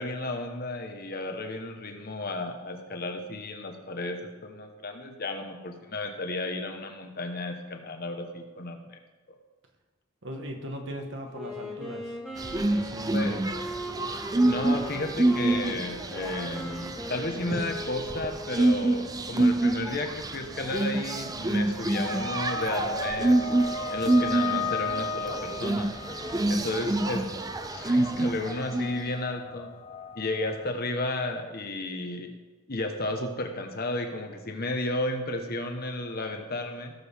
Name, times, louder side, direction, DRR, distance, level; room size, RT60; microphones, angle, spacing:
voice 1, 0.0-9.0 9.3-9.4 13.1-13.4 14.4-23.5 23.9-25.9 26.5-27.2 27.7-29.7 30.1-32.3 32.7-36.9, left 2 dB, 50° left, 5 dB, 1.2 m, -33 dB
voice 2, 10.2-12.0 12.6-13.3, equal, 65° right, 3 dB, 1.5 m, -38 dB
Wind instrument woodwind instrument, 11.3-19.1, equal, ahead, 2.0 m, -39 dB
sound 1, 12.4-29.1, right 2 dB, 20° right, 0.6 m, -27 dB
sound 2, 21.9-30.7, left 3 dB, 30° left, 0.4 m, -36 dB
17.0 x 6.9 x 3.6 m, 1.2 s
head